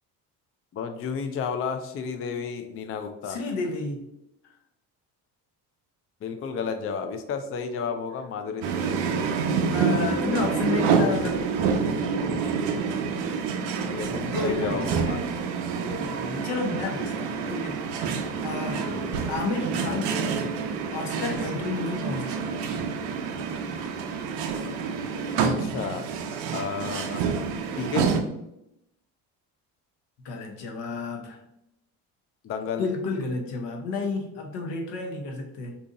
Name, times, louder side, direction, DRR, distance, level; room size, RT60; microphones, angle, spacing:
voice 1, 0.7-3.4 6.2-9.0 13.9-15.2 15.8-16.0 18.9-19.2 25.5-26.1 26.5-27.4 27.8-28.2 32.4-32.9, left 6 dB, 35° left, 7 dB, 0.4 m, -32 dB
voice 2, 3.2-4.1 4.4-4.5 9.7-11.5 14.3-14.8 15.8-18.9 19.3-20.3 20.9-22.5 26.6-26.9 30.2-31.4 32.8-35.8, left 3 dB, 75° left, 2 dB, 0.9 m, -31 dB
sound 1, 8.6-28.2, right 5 dB, 85° right, 0.6 m, -27 dB
2.8 x 2.4 x 3.7 m, 0.83 s
supercardioid pair, 65°, 43 cm